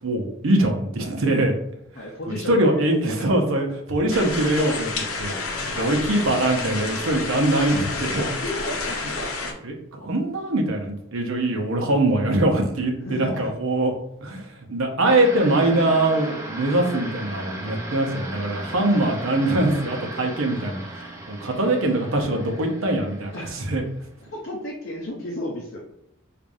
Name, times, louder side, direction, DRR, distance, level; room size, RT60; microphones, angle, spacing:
voice 1, 0.0-1.6 2.3-4.9 5.2-5.3 5.7-8.3 9.6-13.9 14.2-23.8, right 1 dB, 75° right, 2 dB, 0.7 m, -22 dB
voice 2, 1.9-3.3 5.8-6.4 8.4-9.2 13.0-13.5 18.7-19.1 23.3-23.5 24.3-25.8, left 1 dB, 50° left, -3 dB, 0.6 m, -34 dB
sound 1, 4.1-9.5, left 3 dB, 90° left, 0.6 m, -29 dB
sound 2, 15.0-24.1, right 1 dB, 15° right, 0.5 m, -37 dB
4.7 x 2.5 x 2.6 m, 0.77 s
head